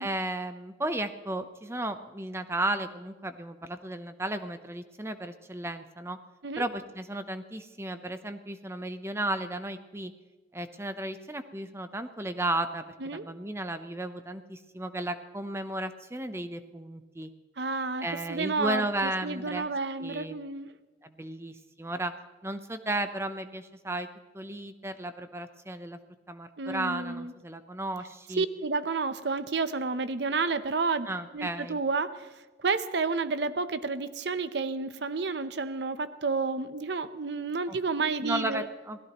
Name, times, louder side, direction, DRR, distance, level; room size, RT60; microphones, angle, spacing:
voice 1, 0.0-6.2 6.6-10.1 10.5-12.8 13.1-17.3 18.0-19.7 20.0-20.4 21.0-22.1 22.4-24.1 24.3-26.0 26.3-28.4 31.1-31.8 37.7-37.8 38.2-39.0, right 1 dB, 15° right, 9 dB, 0.8 m, -34 dB
voice 2, 17.6-20.7 26.6-27.3 28.4-31.1 31.3-32.3 32.6-38.7, right 4 dB, 65° right, 12 dB, 0.8 m, -30 dB
27.0 x 17.5 x 3.0 m, 1.2 s
head